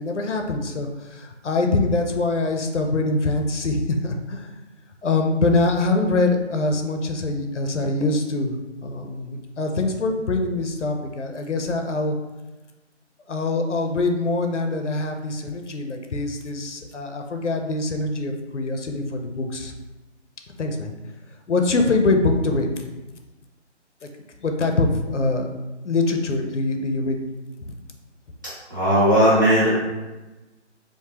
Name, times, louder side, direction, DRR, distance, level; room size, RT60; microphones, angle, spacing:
voice 1, 0.0-4.6 5.0-12.2 13.3-19.7 20.6-20.9 21.5-22.8 24.0-24.1 24.4-25.5 25.8-27.2 27.6-27.8, left 2 dB, 75° left, 4 dB, 0.6 m, -24 dB
voice 2, 28.7-29.7, equal, 15° right, -10 dB, 0.9 m, -17 dB
3.6 x 2.6 x 2.8 m, 1.1 s
figure-of-eight pair, 170°, 36 cm